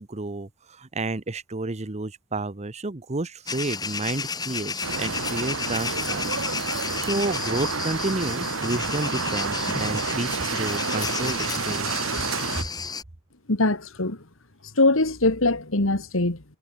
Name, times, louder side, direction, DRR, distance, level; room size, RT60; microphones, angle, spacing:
voice 1, 0.0-6.3 6.6-11.9 12.6-12.7, right 2 dB, 35° right, 1.0 m, -31 dB
grillos en Lloret, 3.5-13.0, left 5 dB, 20° left, 1.1 m, -32 dB
sound 1, 4.8-12.6, right 4 dB, 85° right, 2.2 m, -29 dB
voice 2, 13.5-14.2 14.8-16.4, left 2 dB, 75° left, 2.5 m, -22 dB
head